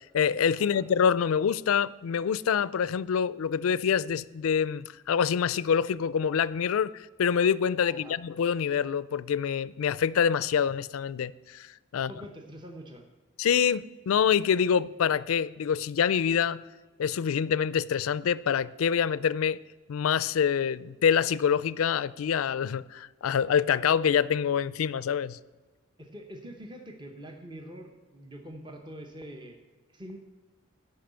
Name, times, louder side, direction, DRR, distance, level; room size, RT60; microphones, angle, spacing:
voice 1, 0.0-11.7 11.9-12.1 13.4-16.6 17.0-19.6 19.9-25.4, left 7 dB, 90° left, 0.4 m, -26 dB
voice 2, 7.8-8.2 11.9-13.1 26.0-29.6 29.9-30.2, equal, 20° right, 0.9 m, -44 dB
10.0 x 5.6 x 8.0 m
head